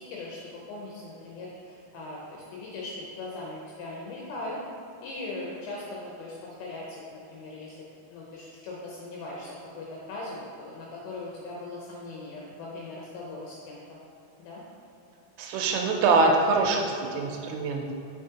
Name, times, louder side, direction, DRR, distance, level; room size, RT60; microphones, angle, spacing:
voice 1, 0.0-4.6 5.0-7.8 8.1-14.0 14.4-14.6, left 2 dB, 80° left, -4 dB, 2.6 m, -39 dB
voice 2, 15.4-17.9, right 3 dB, 80° right, 1 dB, 3.1 m, -24 dB
7.1 x 6.2 x 2.8 m, 2.8 s
omnidirectional pair, 6.0 m